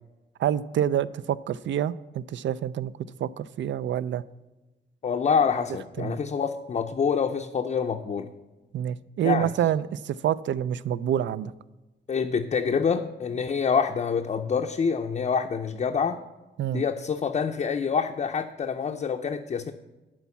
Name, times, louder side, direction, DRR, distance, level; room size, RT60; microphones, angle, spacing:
voice 1, 0.4-2.9 3.2-4.2 6.0-6.2 8.7-11.5 16.6-16.8, right 10 dB, 75° right, 18 dB, 0.4 m, -27 dB
voice 2, 5.0-8.3 9.2-9.5 12.1-16.2 16.7-19.7, left 6 dB, 40° left, 4 dB, 0.5 m, -26 dB
11.0 x 4.6 x 7.1 m, 1.1 s
wide cardioid pair, 130°, 19 cm